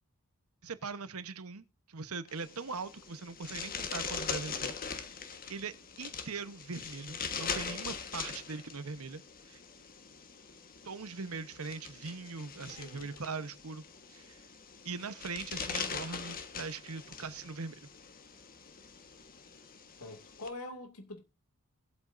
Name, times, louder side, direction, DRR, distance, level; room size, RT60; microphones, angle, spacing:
voice 1, 0.6-4.8 5.5-9.6 10.8-13.8 14.1-14.4 14.8-17.8, right 4 dB, 75° right, 1.0 m, -41 dB
sound 1, 2.3-20.5, left 6 dB, 40° left, 1.4 m, -42 dB
voice 2, 12.7-13.2 20.0-21.2, left 2 dB, 80° left, 2.4 m, -45 dB
20.5 x 8.1 x 2.6 m
head